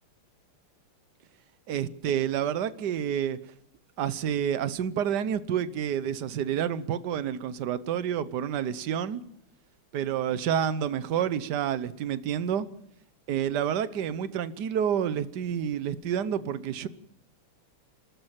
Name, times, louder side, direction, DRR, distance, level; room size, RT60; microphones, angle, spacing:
voice 1, 1.7-3.4 4.0-9.2 9.9-12.7 13.3-16.9, right 9 dB, 60° right, 1.3 m, -29 dB
29.5 x 13.0 x 7.5 m
omnidirectional pair, 2.4 m